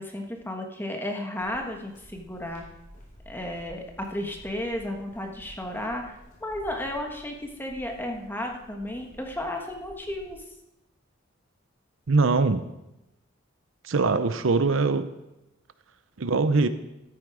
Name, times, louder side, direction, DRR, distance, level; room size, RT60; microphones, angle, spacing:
voice 1, 0.0-2.6 3.2-10.4, left 1 dB, 10° left, 2 dB, 1.4 m, -33 dB
sound 1, 1.4-10.4, equal, 40° left, 4.5 m, -51 dB
voice 2, 12.1-12.6 13.8-15.1 16.2-16.7, right 3 dB, 70° right, 11 dB, 0.7 m, -22 dB
13.5 x 8.6 x 4.9 m, 0.93 s
head